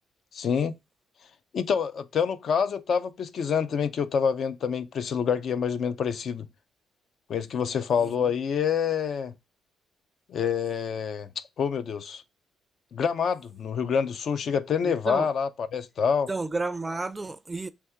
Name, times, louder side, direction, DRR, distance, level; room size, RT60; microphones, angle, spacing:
voice 1, 0.3-0.7 1.5-6.5 7.3-9.3 10.3-12.2 12.9-16.3, left 7 dB, 60° left, 0.4 m, -27 dB
voice 2, 8.0-8.3 14.8-15.3 16.3-17.7, right 3 dB, 20° right, 0.4 m, -32 dB
3.5 x 2.8 x 4.3 m
cardioid pair, 90°, 0 cm